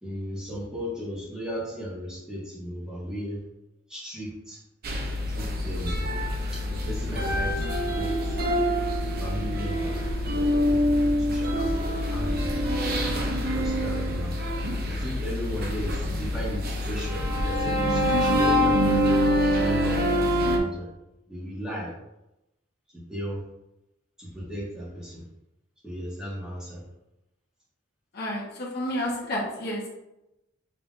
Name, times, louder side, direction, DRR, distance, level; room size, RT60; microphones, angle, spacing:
voice 1, 0.0-3.4 3.9-4.6 5.3-5.9 6.7-7.7 7.9-8.3 9.2-10.0 10.3-12.5 13.5-14.3 14.8-19.1 19.6-20.0 20.3-20.9 21.3-21.9 23.1-23.4 24.2-25.2 25.8-26.8, equal, 5° right, -7 dB, 1.6 m, -35 dB
sound 1, 4.8-20.6, equal, 50° right, 0.6 m, -25 dB
voice 2, 28.1-29.9, equal, 50° left, -4 dB, 1.0 m, -30 dB
5.6 x 3.3 x 2.5 m, 0.92 s
head